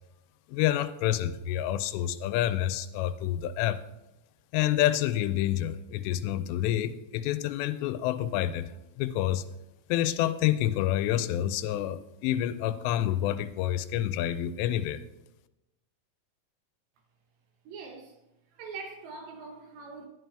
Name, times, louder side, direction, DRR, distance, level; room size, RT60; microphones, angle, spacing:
voice 1, 0.5-3.8 4.5-8.7 9.0-9.4 9.9-15.0, left 12 dB, 85° left, 2.8 m, -28 dB
voice 2, 17.7-18.1 18.5-20.1, right 4 dB, 80° right, 3.3 m, -42 dB
11.5 x 11.0 x 3.4 m
omnidirectional pair, 5.0 m